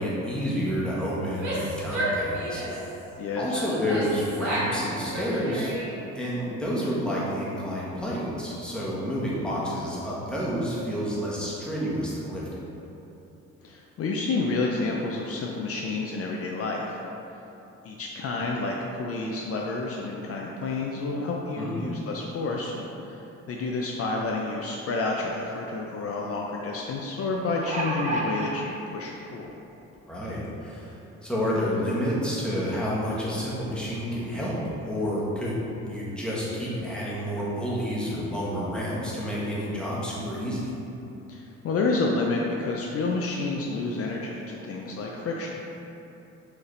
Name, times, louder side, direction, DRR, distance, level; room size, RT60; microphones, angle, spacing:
voice 1, 0.0-2.6 3.4-5.7 6.1-12.4 21.6-21.8 30.1-30.9 31.2-35.6 35.8-40.7, equal, 5° left, -7 dB, 1.1 m, -29 dB
Female speech woman speaking / Yell, 1.3-2.9 3.5-4.8 5.1-6.1, right 1 dB, 85° right, 1.4 m, -31 dB
voice 2, 3.2-3.6 13.6-17.0 17.8-29.5 41.3-45.6, left 3 dB, 50° left, -1 dB, 0.4 m, -29 dB
sound 1, 27.3-28.5 29.4-29.5 29.9-30.0, right 1 dB, 25° right, 0.6 m, -29 dB
4.6 x 3.2 x 3.2 m, 3.0 s
cardioid pair, 90°, 30 cm